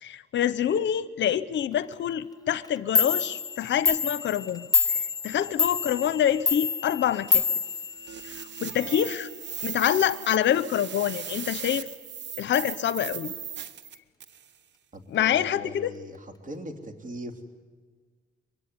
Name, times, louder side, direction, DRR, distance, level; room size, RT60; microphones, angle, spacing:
voice 1, 0.0-4.7 5.2-7.4 8.2-9.3 9.6-11.9 12.4-13.3 15.1-15.9, left 10 dB, 65° left, 15 dB, 0.8 m, -26 dB
Clock, 2.6-2.7 3.0-8.6, left 5 dB, 20° left, 0.7 m, -27 dB
sound 1, 7.3-14.5, right 9 dB, 65° right, 1.3 m, -38 dB
voice 2, 14.9-17.3, right 1 dB, 40° right, 6 dB, 3.3 m, -40 dB
23.5 x 22.5 x 9.8 m, 1.5 s
cardioid pair, 90°, 20 cm